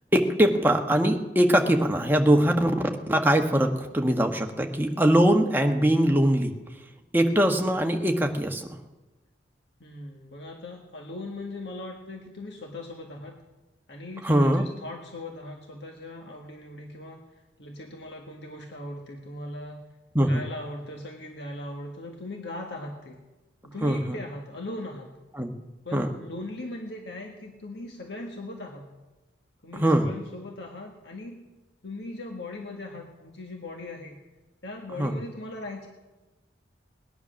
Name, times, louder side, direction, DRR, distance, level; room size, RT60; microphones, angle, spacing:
voice 1, 0.1-2.7 3.1-6.5 7.1-8.7 14.2-14.7 20.1-20.4 23.8-24.2 25.3-25.6 25.9-26.1 29.7-30.1 35.0-35.1, right 1 dB, 10° right, 3 dB, 1.2 m, -22 dB
voice 2, 9.8-13.4 13.9-17.2 17.6-19.8 20.2-23.2 23.6-25.1 25.8-28.9 29.6-31.4 31.8-34.2 34.6-35.9, left 2 dB, 65° left, 1 dB, 1.6 m, -39 dB
19.0 x 10.5 x 6.3 m, 1.1 s
head